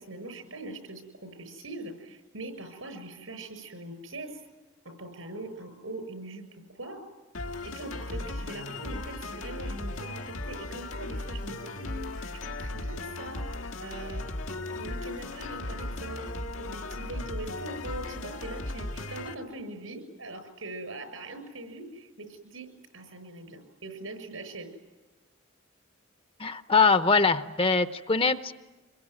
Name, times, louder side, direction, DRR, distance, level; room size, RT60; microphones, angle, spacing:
voice 1, 0.0-4.4 4.8-6.4 6.7-7.0 7.6-14.2 14.6-22.7 22.9-24.7, right 2 dB, 85° right, 9 dB, 6.8 m, -42 dB
sound 1, 7.3-19.3, left 2 dB, 85° left, 1.8 m, -36 dB
voice 2, 26.4-28.5, left 4 dB, 25° left, 10 dB, 0.8 m, -23 dB
26.5 x 22.5 x 9.7 m, 1.2 s
head